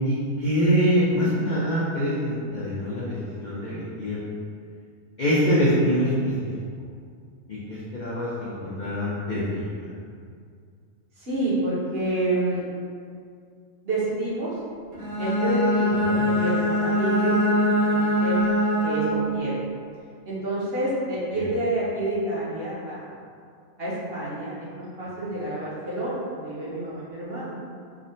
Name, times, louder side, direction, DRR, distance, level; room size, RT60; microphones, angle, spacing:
voice 1, 0.0-4.2 5.2-6.3 7.5-9.7 15.9-16.3, equal, 85° left, -8 dB, 0.4 m, -24 dB
voice 2, 11.2-12.7 13.8-14.5 15.2-17.5 17.8-18.4 18.8-19.6 20.2-23.1 23.8-27.6, right 2 dB, 55° right, -8 dB, 0.9 m, -28 dB
Bowed string instrument, 14.9-19.4, equal, 70° right, 1.3 m, -23 dB
3.4 x 2.1 x 2.6 m, 2.2 s
omnidirectional pair, 1.4 m